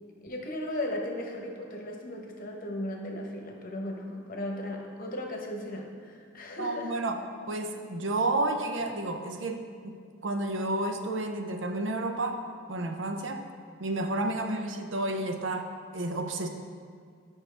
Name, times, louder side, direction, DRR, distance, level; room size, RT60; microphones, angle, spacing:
voice 1, 0.2-6.9, left 1 dB, 50° left, 1 dB, 1.0 m, -36 dB
voice 2, 6.6-12.4 12.7-13.5 13.8-16.5, right 2 dB, 90° right, 5 dB, 0.7 m, -31 dB
10.5 x 5.8 x 3.4 m, 2.1 s
head